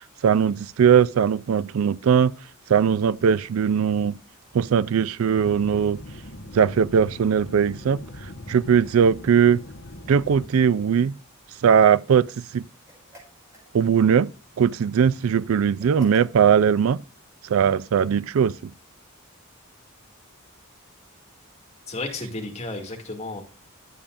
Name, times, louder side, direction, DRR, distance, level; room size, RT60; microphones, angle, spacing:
voice 1, 0.2-2.3 2.7-4.1 4.5-6.0 6.5-8.0 8.5-9.6 10.1-11.1 11.6-12.6 13.7-14.3 14.6-17.0 17.4-18.7, right 7 dB, 70° right, 0.4 m, -19 dB
sound 1, 5.3-10.5, left 1 dB, 60° left, 1.1 m, -41 dB
sound 2, 12.8-14.2 15.8-16.6, equal, 15° right, 4.7 m, -48 dB
voice 2, 21.9-23.4, left 2 dB, 30° left, 2.2 m, -33 dB
11.0 x 8.5 x 2.5 m
head